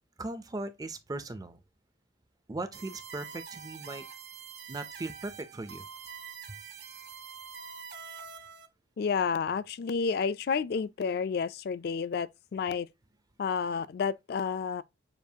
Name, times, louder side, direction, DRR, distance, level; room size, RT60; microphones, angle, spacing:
voice 1, 0.2-1.6 2.5-4.0 4.7-5.8 6.5-6.6, right 2 dB, 20° right, 0.4 m, -38 dB
sound 1, 2.7-8.7, right 6 dB, 55° right, 0.7 m, -45 dB
voice 2, 9.0-12.9 13.4-14.8, left 6 dB, 50° left, 0.3 m, -30 dB
6.9 x 2.4 x 2.7 m
head